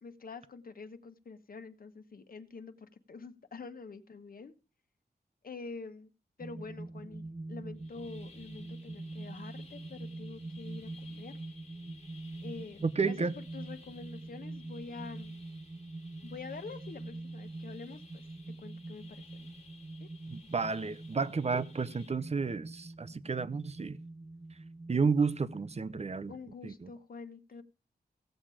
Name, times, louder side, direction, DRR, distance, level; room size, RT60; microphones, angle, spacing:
voice 1, 0.0-4.5 5.4-6.1 6.4-7.2 7.5-11.4 12.4-15.3 16.2-18.2 18.6-19.5 20.0-20.1 26.3-27.6, left 4 dB, 65° left, 1.2 m, -46 dB
sound 1, 6.4-25.8, right 2 dB, 20° right, 1.0 m, -45 dB
sound 2, 7.8-22.1, left 4 dB, 40° left, 2.6 m, -58 dB
voice 2, 12.8-13.3 20.3-24.0 24.9-26.3 26.6-26.9, right 5 dB, 40° right, 0.7 m, -31 dB
16.0 x 7.4 x 4.9 m
wide cardioid pair, 115°, 16 cm